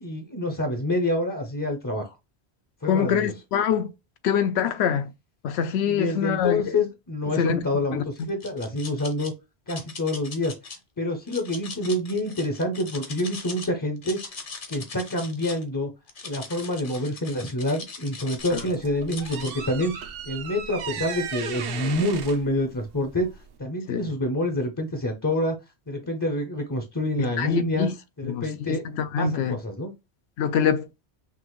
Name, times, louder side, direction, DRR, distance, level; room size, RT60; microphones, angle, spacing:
voice 1, 0.0-2.2 2.8-3.3 5.8-9.3 9.7-10.6 11.0-14.2 14.7-15.9 16.2-19.9 20.3-23.3 23.6-25.6 25.9-27.9 28.2-28.9 29.2-29.9, left 1 dB, 20° left, 0.6 m, -27 dB
voice 2, 2.9-3.9 4.2-5.1 5.4-6.7 7.4-8.3 18.5-18.6 23.9-24.0 27.2-27.9 28.2-29.6 30.4-30.9, left 7 dB, 80° left, 0.9 m, -25 dB
sound 1, 8.2-9.3 9.7-10.8 11.3-13.7 14.0-15.6 16.1-18.7 19.1-19.5, left 4 dB, 55° left, 1.1 m, -40 dB
sound 2, 18.4-23.6, right 7 dB, 65° right, 0.8 m, -36 dB
5.9 x 2.5 x 3.0 m
omnidirectional pair, 1.1 m